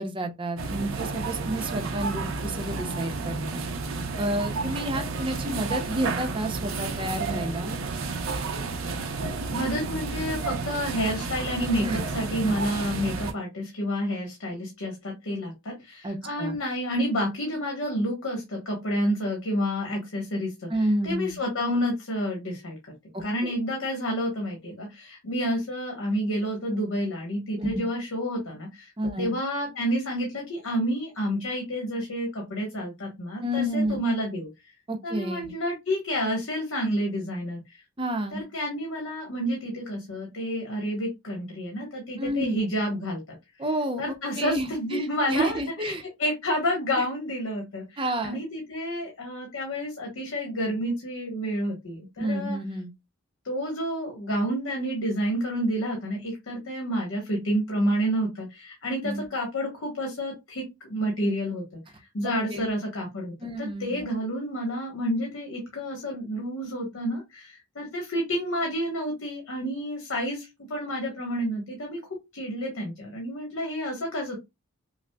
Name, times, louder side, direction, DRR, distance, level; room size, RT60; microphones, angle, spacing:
voice 1, 0.0-3.6 4.2-7.7 11.8-12.0 12.4-12.6 16.0-16.6 20.7-21.4 23.1-23.6 27.6-27.9 29.0-29.3 33.4-34.0 34.9-35.5 38.0-38.4 42.2-42.6 43.6-46.0 47.0-47.1 48.0-48.4 52.2-52.9 59.0-59.3 62.2-62.7 63.4-64.1, right 1 dB, 25° right, 0.6 m, -30 dB
sound 1, 0.6-13.3, right 4 dB, 85° right, 0.6 m, -31 dB
voice 2, 9.5-20.7 21.0-22.9 23.2-28.9 29.2-34.5 35.0-37.6 38.3-43.2 44.0-45.9 46.2-52.6 53.4-72.0 72.3-74.4, equal, 85° left, 1.2 m, -29 dB
5.9 x 2.0 x 2.2 m
head